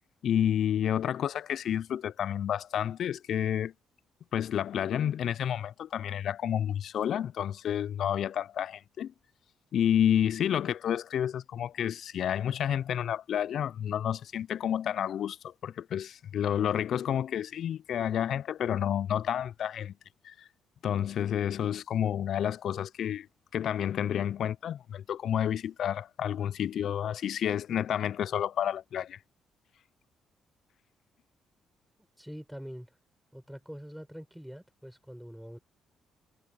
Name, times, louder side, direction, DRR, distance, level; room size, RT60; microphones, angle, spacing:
voice 1, 0.2-3.7 4.3-9.1 9.7-19.9 20.2-20.5 20.8-23.3 23.5-29.2, left 9 dB, 65° left, 0.3 m, -30 dB
voice 2, 32.2-32.9 33.3-35.6, equal, ahead, 4.8 m, -44 dB
cardioid pair, 90°, 0 cm